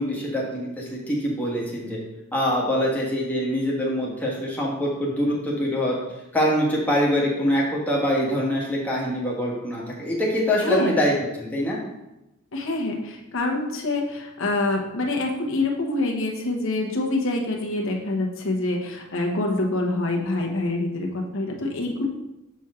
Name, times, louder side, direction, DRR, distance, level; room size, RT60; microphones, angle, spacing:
voice 1, 0.0-2.0 2.3-6.0 6.3-11.8, equal, 10° left, -5 dB, 1.6 m, -24 dB
voice 2, 10.6-10.9 12.5-22.1, left 2 dB, 65° left, 1 dB, 1.1 m, -26 dB
7.1 x 4.3 x 3.7 m, 0.94 s
head